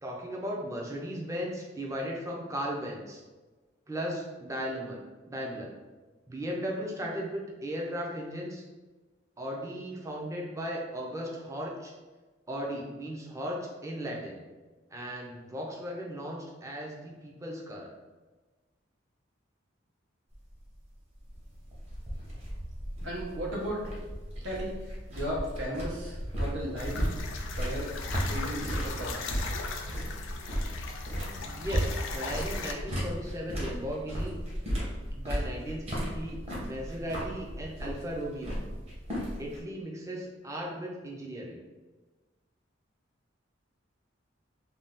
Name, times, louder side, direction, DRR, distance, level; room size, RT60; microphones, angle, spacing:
voice 1, 0.0-3.2 3.9-5.0 5.3-5.7 6.3-8.6 9.4-11.9 12.5-14.4 14.9-17.9 31.4-34.4 35.2-38.6 39.4-41.6, equal, 15° right, -2 dB, 0.5 m, -36 dB
sound 1, 20.3-39.6, equal, 35° right, 0.9 m, -35 dB
voice 2, 23.0-23.9 24.4-27.0 27.5-27.9 28.2-29.3, equal, 75° right, -3 dB, 0.9 m, -36 dB
sound 2, 26.8-32.7, left 4 dB, 75° left, 0.4 m, -38 dB
2.6 x 2.3 x 3.5 m, 1.3 s
head